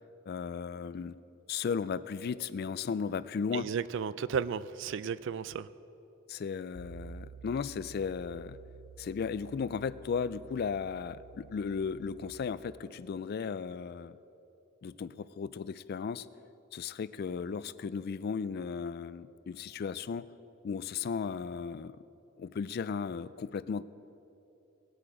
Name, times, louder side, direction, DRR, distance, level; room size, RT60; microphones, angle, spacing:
voice 1, 0.3-1.2 1.5-3.7 6.3-8.6 9.0-14.2 14.8-16.3 16.7-20.3 20.6-22.0 22.4-23.8, left 6 dB, 50° left, 17 dB, 0.3 m, -35 dB
voice 2, 3.5-5.7, right 6 dB, 60° right, 17 dB, 0.3 m, -34 dB
Piano, 6.7-12.3, right 5 dB, 75° left, 0.8 m, -51 dB
19.0 x 8.7 x 4.9 m, 3.0 s
head